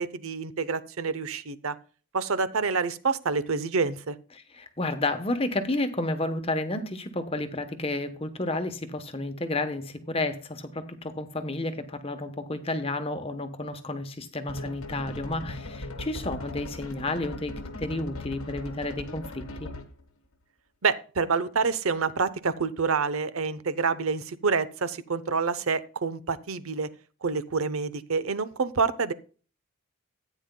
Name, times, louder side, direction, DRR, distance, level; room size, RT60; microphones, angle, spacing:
voice 1, 0.0-1.8 2.1-4.2 20.8-26.9 27.2-29.1, right 4 dB, 75° right, 14 dB, 0.8 m, -27 dB
voice 2, 4.5-19.7, left 2 dB, 25° left, 8 dB, 1.0 m, -31 dB
sound 1, 14.5-20.0, left 1 dB, 80° left, 1.5 m, -39 dB
14.0 x 9.2 x 2.2 m, 0.38 s
head